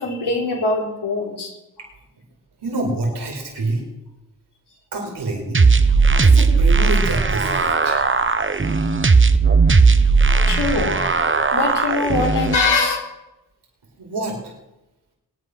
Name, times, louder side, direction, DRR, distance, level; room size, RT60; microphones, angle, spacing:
voice 1, 0.0-1.5 10.5-11.1 11.5-13.0, left 3 dB, 85° left, 0 dB, 3.9 m, -22 dB
voice 2, 2.6-3.8 4.9-5.6 6.2-8.0 14.0-14.5, right 2 dB, 90° right, -1 dB, 5.0 m, -26 dB
sound 1, 5.5-12.5, right 4 dB, 30° right, 1.2 m, -16 dB
22.5 x 9.8 x 6.3 m, 0.95 s
cardioid pair, 45°, 39 cm